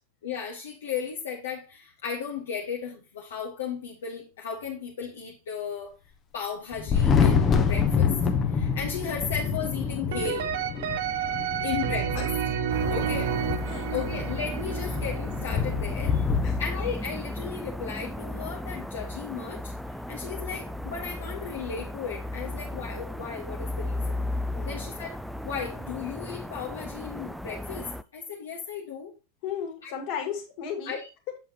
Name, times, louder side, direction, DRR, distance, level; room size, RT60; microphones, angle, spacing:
voice 1, 0.2-5.9 6.3-10.8 11.6-12.3 12.9-13.3 13.9-19.7 20.1-24.3 24.6-25.2 25.4-29.1 29.8-29.9 30.8-31.1, left 6 dB, 60° left, 1.4 m, -35 dB
Thunder, 6.7-16.6, left 6 dB, 25° left, 1.0 m, -27 dB
sound 1, 10.1-16.0, right 8 dB, 55° right, 0.7 m, -30 dB
sound 2, 12.7-28.0, left 1 dB, ahead, 0.4 m, -34 dB
voice 2, 24.5-24.9 29.4-31.0, left 8 dB, 45° left, 2.4 m, -35 dB
7.7 x 7.3 x 3.0 m
figure-of-eight pair, 90°, 0 cm